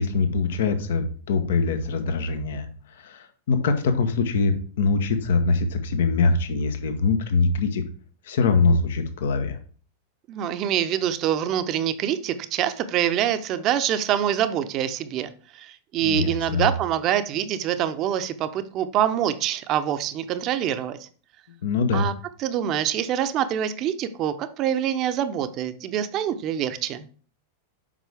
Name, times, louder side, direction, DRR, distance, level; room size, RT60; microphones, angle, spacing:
voice 1, 0.0-7.8 8.2-9.6 16.0-16.7 21.6-22.1, left 4 dB, 65° left, 8 dB, 1.0 m, -23 dB
voice 2, 10.3-21.1 21.9-22.1 22.4-27.1, right 10 dB, 40° right, 11 dB, 0.7 m, -25 dB
7.5 x 5.2 x 3.5 m, 0.42 s
hypercardioid pair, 95°, 0 cm